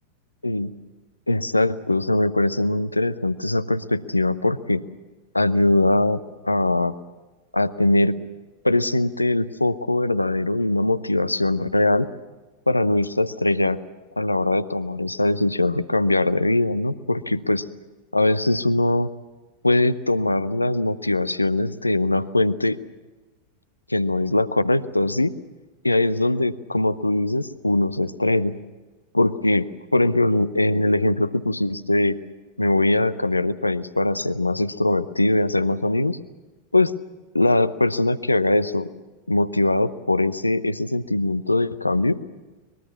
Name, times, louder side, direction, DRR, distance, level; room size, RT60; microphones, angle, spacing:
voice 1, 1.3-4.8 5.3-6.2 6.4-7.0 7.5-8.1 8.6-12.1 12.7-13.8 14.2-17.6 18.1-19.1 19.6-22.8 23.9-25.3 25.8-28.5 29.1-32.2 32.6-36.2 36.7-37.0 37.3-38.9 39.3-42.2, left 2 dB, 85° left, 14 dB, 0.8 m, -21 dB
23.5 x 21.5 x 7.2 m, 1.2 s
figure-of-eight pair, 90°, 0 cm